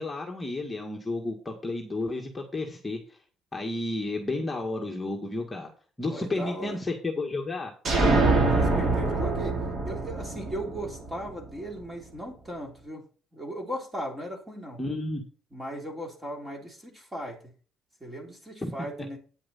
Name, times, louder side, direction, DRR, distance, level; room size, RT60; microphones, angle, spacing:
voice 1, 0.0-3.2 3.5-5.7 6.0-7.7 14.8-15.2 18.6-18.7, left 2 dB, 15° left, 0 dB, 1.8 m, -32 dB
voice 2, 6.0-6.8 8.4-9.6 9.8-13.0 13.3-14.8 15.5-17.4 18.0-19.2, right 1 dB, 15° right, 1 dB, 3.5 m, -37 dB
sound 1, 7.8-11.5, right 3 dB, 45° right, 3.3 m, -24 dB
9.5 x 7.6 x 4.2 m, 0.39 s
cardioid pair, 100°, 0 cm